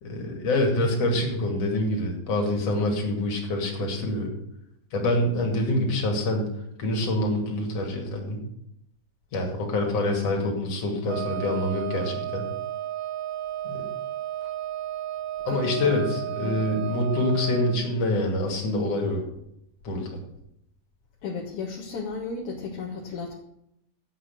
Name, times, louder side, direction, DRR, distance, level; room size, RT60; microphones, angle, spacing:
voice 1, 0.0-4.3 4.9-6.5 6.8-8.4 9.3-12.5 13.6-13.8 15.4-19.2 19.8-20.1, left 1 dB, 40° left, 1 dB, 3.0 m, -26 dB
Wind instrument woodwind instrument, 11.0-17.8, right 12 dB, 70° right, 2.1 m, -33 dB
voice 2, 15.5-16.0 16.4-16.6 21.2-23.4, left 4 dB, 60° left, -2 dB, 2.2 m, -34 dB
8.1 x 8.0 x 8.0 m, 0.77 s
omnidirectional pair, 5.0 m